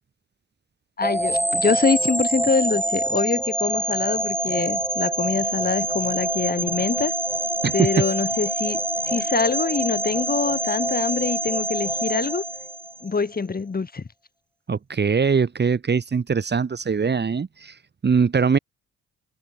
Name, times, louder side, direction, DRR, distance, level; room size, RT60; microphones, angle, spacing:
voice 1, 1.0-7.1 7.7-8.8 9.1-12.4 13.0-14.0, left 4 dB, 30° left, 5.0 m, -24 dB
sound 1, 1.0-13.2, right 1 dB, 5° right, 7.8 m, -26 dB
voice 2, 14.7-17.7 18.0-18.6, right 5 dB, 35° right, 2.3 m, -22 dB
cardioid pair, 90°, 30 cm